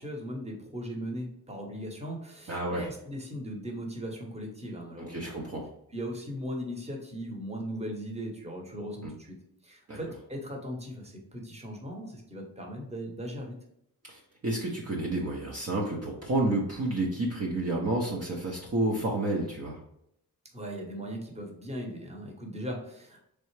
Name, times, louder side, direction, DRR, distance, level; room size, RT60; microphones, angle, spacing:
voice 1, 0.0-5.3 5.9-9.4 9.6-13.6 20.5-23.2, equal, 15° right, 1 dB, 1.0 m, -38 dB
voice 2, 2.5-2.9 5.1-5.7 9.0-9.1 9.9-10.0 14.1-19.8, right 2 dB, 40° right, -2 dB, 0.7 m, -30 dB
3.7 x 3.3 x 3.2 m, 0.75 s
wide cardioid pair, 115°, 41 cm